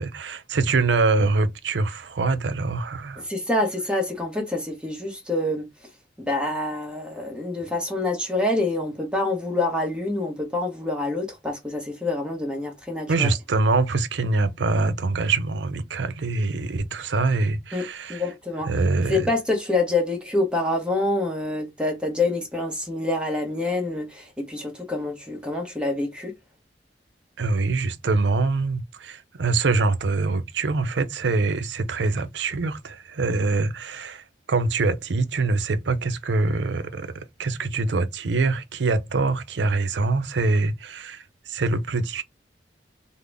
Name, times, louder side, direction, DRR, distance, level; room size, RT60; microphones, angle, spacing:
voice 1, 0.0-3.2 13.1-18.2 18.7-19.3 27.4-42.2, right 3 dB, 75° right, 0.5 m, -24 dB
voice 2, 3.2-5.7 6.2-13.3 17.7-18.7 19.1-26.3, left 2 dB, 5° right, 0.9 m, -26 dB
3.7 x 2.0 x 3.3 m
head